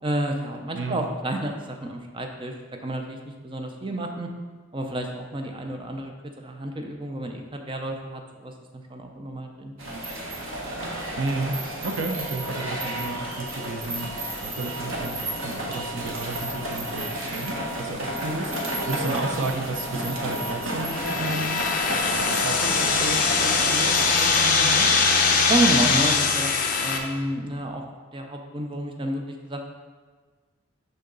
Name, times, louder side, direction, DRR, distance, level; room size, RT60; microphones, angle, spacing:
voice 1, 0.0-2.5 2.8-3.2 3.4-4.3 4.7-9.7 25.5-27.8 28.1-29.6, right 1 dB, 25° right, 3 dB, 0.5 m, -30 dB
voice 2, 0.7-1.1 11.2-11.6 11.8-14.1 14.4-21.6 22.2-25.0, right 2 dB, 70° right, 3 dB, 0.6 m, -32 dB
sound 1, 9.8-24.4, right 1 dB, 85° right, 1.4 m, -31 dB
sound 2, 20.9-27.0, left 4 dB, 40° left, 0.7 m, -22 dB
6.6 x 5.6 x 3.9 m, 1.4 s
head